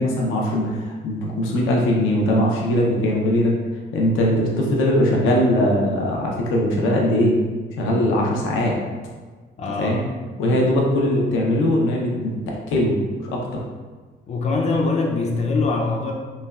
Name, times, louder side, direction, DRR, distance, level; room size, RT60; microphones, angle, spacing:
voice 1, 0.0-3.5 3.9-7.4 7.8-8.7 9.8-10.0 10.4-13.0 13.2-13.6, left 1 dB, 90° left, -1 dB, 0.6 m, -20 dB
voice 2, 9.6-10.0 14.3-16.1, left 3 dB, 35° left, 0 dB, 0.4 m, -23 dB
3.1 x 2.2 x 2.3 m, 1.4 s
cardioid pair, 90°, 20 cm